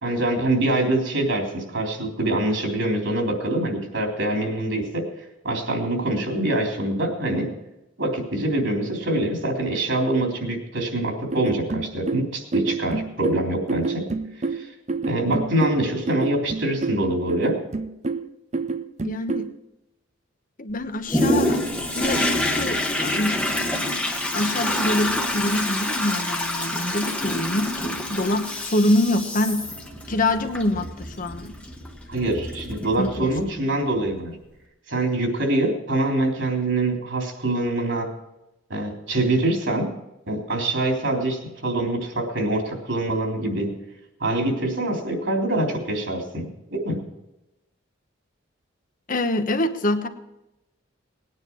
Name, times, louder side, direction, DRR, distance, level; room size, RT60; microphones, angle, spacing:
voice 1, 0.0-5.1 5.4-7.5 8.0-14.0 14.5-14.7 15.0-17.6 32.1-34.4 34.9-38.1 38.7-39.9 40.3-43.7 44.2-47.0, right 1 dB, 70° right, 1 dB, 3.5 m, -24 dB
sound 1, 11.3-19.5, right 4 dB, 35° right, 0.6 m, -28 dB
voice 2, 19.0-19.5 20.6-21.6 21.9-23.9 24.3-29.7 30.1-31.5 33.0-33.3 33.7-33.8 49.1-50.1, left 1 dB, 45° left, 8 dB, 1.1 m, -25 dB
Toilet flush, 21.1-33.5 34.1-34.2, left 1 dB, 5° left, 1.2 m, -27 dB
19.5 x 9.8 x 4.7 m, 0.92 s
head